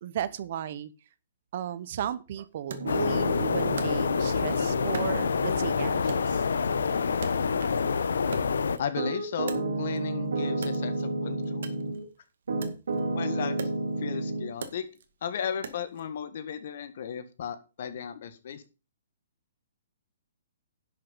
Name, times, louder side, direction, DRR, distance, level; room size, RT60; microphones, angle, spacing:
voice 1, 0.0-0.9 1.5-6.5, right 10 dB, 45° right, 16 dB, 0.9 m, -35 dB
Wood, 2.7-4.5 4.9-5.7 6.1-7.9 8.2-10.1 10.5-16.1, right 6 dB, 65° right, 2.1 m, -43 dB
Piano, 2.7-12.0 12.5-14.5, right 2 dB, 85° right, 3.6 m, -33 dB
sound 1, 2.8-8.8, left 5 dB, 90° left, 1.0 m, -27 dB
voice 2, 8.8-11.7 13.1-13.6 14.0-14.9 15.2-18.6, left 8 dB, 50° left, 11 dB, 1.6 m, -35 dB
11.5 x 6.6 x 5.6 m, 0.32 s
hypercardioid pair, 165°, 0 cm